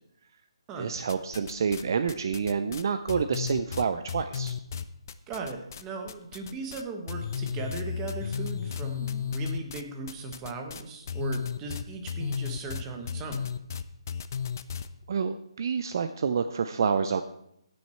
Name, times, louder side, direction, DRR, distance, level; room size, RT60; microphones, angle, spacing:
voice 1, 0.8-4.6 15.1-17.2, right 6 dB, 40° right, 10 dB, 0.5 m, -28 dB
sound 1, 1.1-1.8 2.1-5.8 6.1-6.8 7.1-14.9, left 7 dB, 35° left, 0.5 m, -34 dB
voice 2, 5.3-13.5, right 3 dB, 15° right, 3 dB, 1.1 m, -38 dB
15.5 x 6.3 x 4.4 m, 0.76 s
hypercardioid pair, 170°, 3 cm